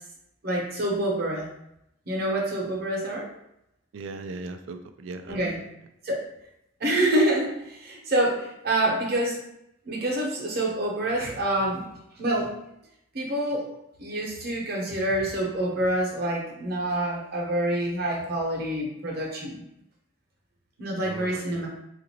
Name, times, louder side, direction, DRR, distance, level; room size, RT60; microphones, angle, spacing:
voice 1, 0.4-1.5 2.1-3.3 5.3-5.6 6.0-6.2 6.8-9.4 9.9-11.9 12.2-12.5 13.1-13.7 14.0-19.6 20.8-21.7, right 1 dB, 55° right, -2 dB, 0.8 m, -27 dB
voice 2, 3.9-5.5 21.0-21.7, right 3 dB, 80° right, 8 dB, 0.4 m, -38 dB
3.8 x 2.5 x 2.8 m, 0.80 s
head